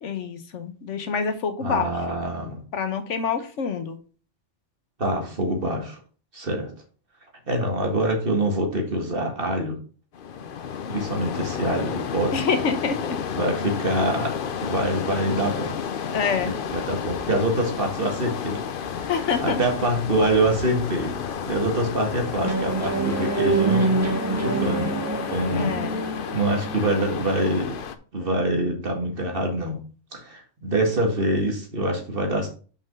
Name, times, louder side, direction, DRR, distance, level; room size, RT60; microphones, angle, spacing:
voice 1, 0.0-1.9 2.7-4.0 12.3-13.2 16.1-16.5 19.1-19.6 25.5-26.0, left 5 dB, 80° left, 9 dB, 1.3 m, -26 dB
voice 2, 1.6-2.6 5.0-6.0 6.3-6.7 7.5-9.8 10.9-12.3 13.3-14.3 14.6-15.8 16.5-18.6 18.9-19.1 19.4-21.2 21.4-23.9 24.4-25.0 25.3-25.8 26.3-27.7 28.1-29.8 30.1-32.5, right 1 dB, 50° right, 2 dB, 2.0 m, -25 dB
sound 1, 10.1-27.9, left 7 dB, 55° left, 0.8 m, -31 dB
sound 2, 22.4-27.1, right 3 dB, 15° right, 1.0 m, -26 dB
5.5 x 5.5 x 5.3 m, 0.38 s
omnidirectional pair, 1.2 m